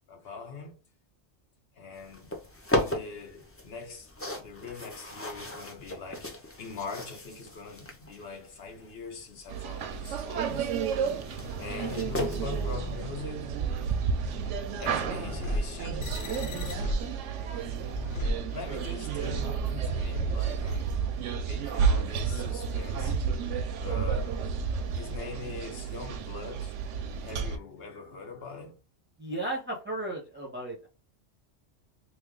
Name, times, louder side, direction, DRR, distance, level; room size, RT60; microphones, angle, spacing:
voice 1, 0.1-0.8 1.7-2.4 2.7-6.3 6.6-11.0 11.6-13.5 14.8-16.9 18.5-23.2 23.8-24.4 24.9-26.7 27.2-28.8, left 4 dB, 60° left, 0.9 m, -42 dB
sound 1, 1.9-12.6, left 1 dB, 20° left, 0.4 m, -37 dB
sound 2, 9.5-27.6, right 6 dB, 85° right, 0.9 m, -31 dB
sound 3, 10.7-19.1, equal, 85° left, 1.0 m, -37 dB
voice 2, 29.2-30.9, right 1 dB, 10° right, 0.8 m, -34 dB
3.2 x 2.3 x 3.6 m
omnidirectional pair, 1.2 m